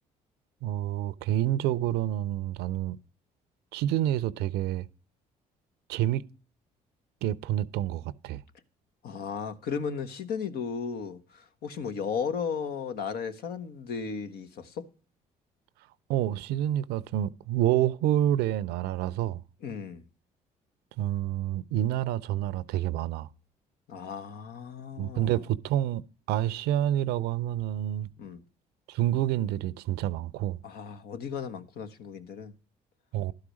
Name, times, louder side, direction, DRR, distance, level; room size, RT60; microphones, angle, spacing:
voice 1, 0.6-3.0 3.7-4.9 5.9-6.2 7.2-8.4 16.1-19.4 21.0-23.3 25.0-26.0 26.3-28.1 28.9-30.6 33.1-33.3, right 12 dB, 80° right, 0.6 m, -28 dB
voice 2, 9.0-14.9 19.6-20.1 23.9-25.3 28.2-28.4 30.6-32.5, left 6 dB, 70° left, 1.2 m, -35 dB
12.0 x 4.9 x 6.3 m
supercardioid pair, 65°, 17 cm